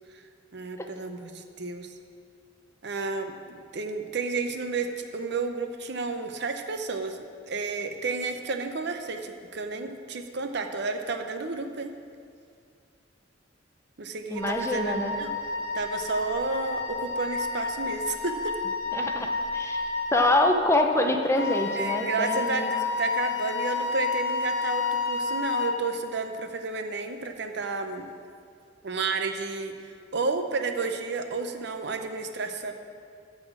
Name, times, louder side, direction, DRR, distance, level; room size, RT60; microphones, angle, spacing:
voice 1, 0.5-1.9 2.8-11.9 14.0-15.3 15.7-18.5 21.8-28.1 28.8-29.7 30.1-32.7, right 4 dB, 65° right, 6 dB, 0.7 m, -31 dB
voice 2, 14.3-15.1 18.9-19.3 19.5-19.8 20.1-22.7, left 1 dB, 15° left, 4 dB, 0.7 m, -25 dB
Wind instrument woodwind instrument, 14.3-20.4, left 3 dB, 30° right, 1.9 m, -32 dB
Wind instrument woodwind instrument 2, 21.4-25.8, left 5 dB, 80° left, 0.9 m, -29 dB
12.5 x 4.2 x 7.4 m, 2.3 s
head